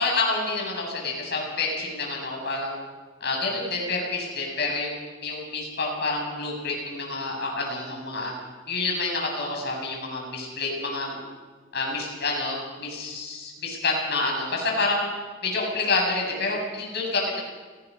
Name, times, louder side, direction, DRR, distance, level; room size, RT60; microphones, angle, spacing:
voice 1, 0.0-2.8 3.2-8.3 8.7-11.2 11.7-15.1 15.4-17.4, left 3 dB, 55° left, 0 dB, 7.6 m, -28 dB
29.0 x 19.5 x 5.6 m, 1.4 s
head